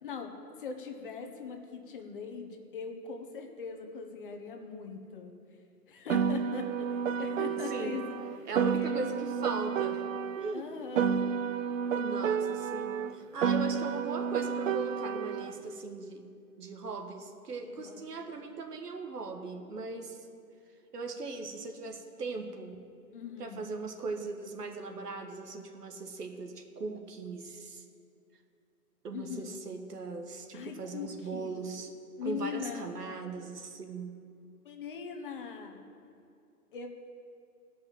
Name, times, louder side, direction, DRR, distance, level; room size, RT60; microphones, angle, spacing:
voice 1, 0.0-5.3 5.9-6.9 7.2-8.1 8.6-9.3 10.5-11.2 17.6-18.3 23.1-23.6 29.1-29.6 30.5-31.5 32.2-32.9 34.6-35.8 36.7-36.9, left 6 dB, 35° left, 4 dB, 1.1 m, -41 dB
Piano, 6.1-10.6 10.9-15.6, right 7 dB, 55° right, 0.5 m, -31 dB
voice 2, 7.5-8.1 8.5-10.7 11.9-16.3 16.6-20.3 20.9-22.7 23.4-27.9 29.0-31.9 32.2-34.2, right 3 dB, 80° right, 5 dB, 1.6 m, -39 dB
17.0 x 5.6 x 7.5 m, 2.5 s
hypercardioid pair, 155°, 46 cm